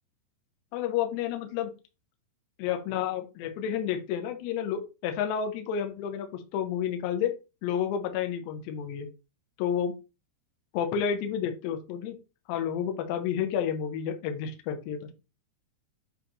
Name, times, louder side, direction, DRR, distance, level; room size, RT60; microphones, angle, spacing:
voice 1, 0.7-1.7 2.6-7.4 7.6-9.1 9.6-10.0 10.7-12.2 12.5-15.0, left 8 dB, 80° left, 5 dB, 3.0 m, -30 dB
8.5 x 4.0 x 3.0 m, 0.29 s
omnidirectional pair, 5.2 m